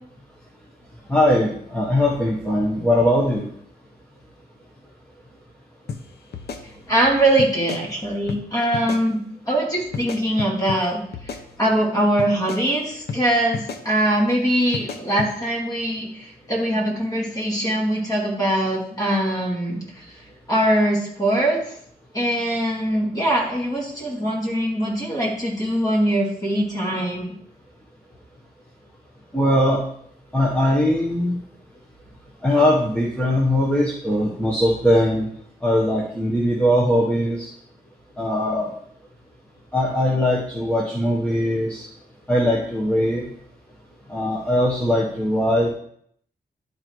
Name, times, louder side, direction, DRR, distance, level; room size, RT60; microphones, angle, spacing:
voice 1, 1.1-3.5 29.3-29.8 30.3-31.4 32.4-35.3 35.6-37.5 38.2-38.7 39.7-41.9 42.3-43.2 44.1-45.7, left 1 dB, 5° left, -5 dB, 1.2 m, -20 dB
sound 1, 5.9-6.0 6.3-7.1 7.4-7.8 8.3-8.4 8.7-9.0 9.9-10.8 11.1-11.9 12.2-12.6 13.1-13.2 13.5-13.8 14.7-15.3, left 5 dB, 80° left, 0.8 m, -32 dB
voice 2, 6.9-9.2 9.5-19.8 20.5-21.6 22.1-27.3, right 1 dB, 20° left, -3 dB, 2.5 m, -22 dB
11.0 x 4.1 x 4.6 m, 0.66 s
wide cardioid pair, 155°, 16 cm